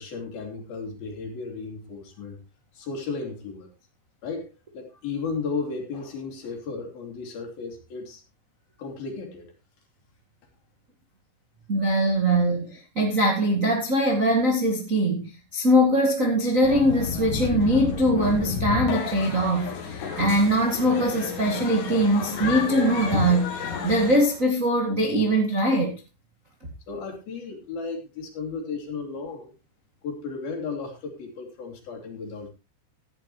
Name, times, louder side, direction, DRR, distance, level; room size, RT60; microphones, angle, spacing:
voice 1, 0.0-2.4 2.7-3.7 4.2-8.2 8.8-9.5 26.9-29.5 30.0-32.5, left 4 dB, 55° left, 2 dB, 4.3 m, -34 dB
voice 2, 11.7-25.9, equal, 50° right, 0 dB, 0.9 m, -22 dB
sound 1, 16.6-24.5, left 5 dB, 90° left, 5.0 m, -31 dB
16.0 x 10.5 x 3.1 m, 0.28 s
omnidirectional pair, 5.4 m